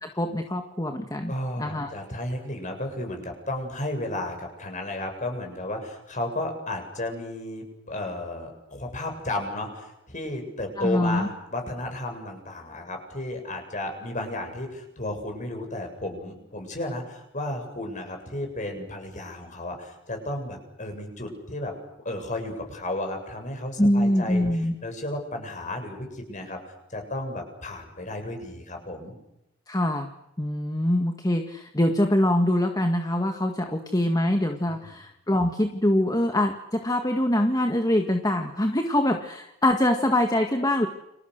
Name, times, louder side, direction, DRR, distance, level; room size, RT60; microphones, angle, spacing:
voice 1, 0.0-1.3 1.6-1.9 10.8-11.3 23.8-24.7 29.7-30.1 30.4-40.9, left 1 dB, 20° left, 5 dB, 1.8 m, -24 dB
voice 2, 1.3-21.7 22.0-26.6 26.9-29.1 34.7-34.9, left 1 dB, 40° left, 4 dB, 7.6 m, -33 dB
30.0 x 27.0 x 6.6 m, 0.88 s
head